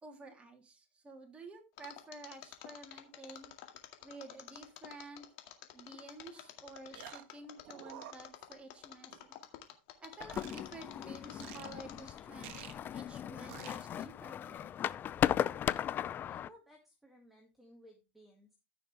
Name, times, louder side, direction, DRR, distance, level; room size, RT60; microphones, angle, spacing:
voice 1, 0.0-3.5 4.0-5.2 5.7-9.4 10.0-14.7, right 2 dB, 20° right, 2 dB, 3.1 m, -51 dB
Mechanisms, 1.8-12.4 12.7-12.8, left 13 dB, 60° left, 2.0 m, -50 dB
sound 1, 5.9-6.0 6.9-7.4 7.6-8.8 9.1-9.3 10.3-10.6 11.4-11.7 12.4-12.7 13.5-13.8, right 12 dB, 60° right, 1.4 m, -48 dB
sound 2, 10.2-16.5, left 10 dB, 35° left, 0.5 m, -36 dB
voice 2, 16.3-18.5, equal, 5° right, 1 dB, 2.0 m, -60 dB
14.5 x 6.0 x 3.3 m, 0.28 s
hypercardioid pair, 105°, 6 cm